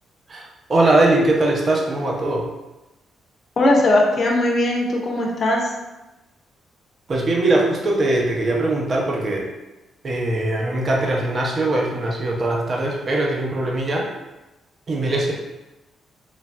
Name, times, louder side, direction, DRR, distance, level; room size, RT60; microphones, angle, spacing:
voice 1, 0.3-2.5 7.1-9.5 10.0-14.1 14.9-15.3, right 2 dB, 45° right, -2 dB, 0.6 m, -21 dB
voice 2, 3.6-5.7, left 1 dB, 50° left, 0 dB, 0.6 m, -19 dB
3.2 x 2.5 x 2.2 m, 1.0 s
cardioid pair, 75°, 0 cm